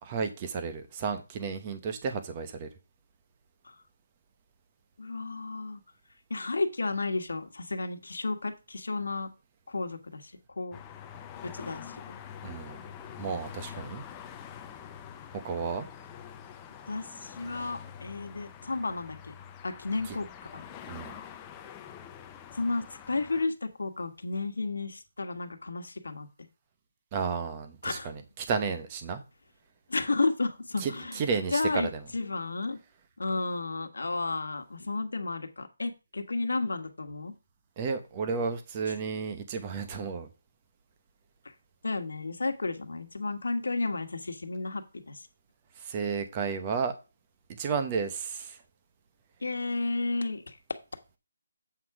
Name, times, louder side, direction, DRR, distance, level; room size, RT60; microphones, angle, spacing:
voice 1, 0.0-2.7 12.4-12.8 13.2-14.0 15.4-15.9 20.9-21.1 27.1-29.2 30.8-31.9 37.8-40.3 45.8-46.9 47.6-48.6, right 5 dB, 20° right, 8 dB, 1.0 m, -32 dB
voice 2, 5.0-5.8 6.3-9.3 9.7-10.3 10.6-10.8 11.4-12.2 16.9-19.3 19.6-20.3 20.5-20.7 22.5-26.3 27.8-28.1 29.9-31.2 31.5-32.8 33.2-37.3 41.8-45.2 49.4-50.5, left 3 dB, 85° left, 7 dB, 1.5 m, -32 dB
sound 1, 10.7-23.5, left 8 dB, 10° left, 0.6 m, -46 dB
8.1 x 5.9 x 4.8 m, 0.29 s
hypercardioid pair, 170°, 0 cm